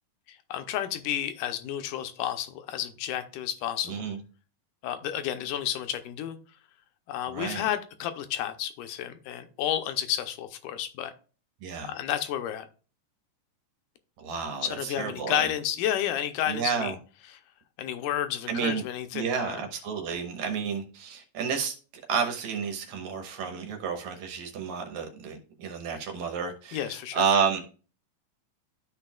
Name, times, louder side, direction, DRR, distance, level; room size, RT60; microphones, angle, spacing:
voice 1, 0.3-4.0 4.8-6.4 7.1-11.1 11.8-12.7 14.6-17.0 17.3-17.4 17.8-19.6 26.7-27.2, left 11 dB, 85° left, 2.3 m, -31 dB
voice 2, 3.8-4.2 7.3-7.7 11.6-11.9 14.2-15.5 16.5-17.0 18.5-18.8 19.1-21.8 22.1-27.6, right 6 dB, 70° right, 2.3 m, -30 dB
13.0 x 4.5 x 2.3 m
omnidirectional pair, 3.7 m